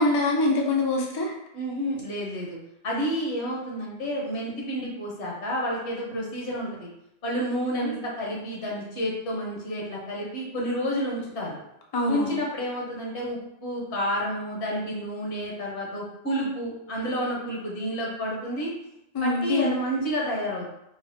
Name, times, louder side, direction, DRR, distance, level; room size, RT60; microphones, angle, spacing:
voice 1, 0.0-1.3 7.7-7.9 11.9-12.3 19.1-19.7, left 2 dB, 40° left, -1 dB, 0.3 m, -24 dB
voice 2, 1.5-2.6 2.8-6.9 7.2-11.6 12.1-18.7 19.2-20.7, equal, 80° left, -3 dB, 1.2 m, -30 dB
3.9 x 2.1 x 2.7 m, 0.81 s
omnidirectional pair, 1.1 m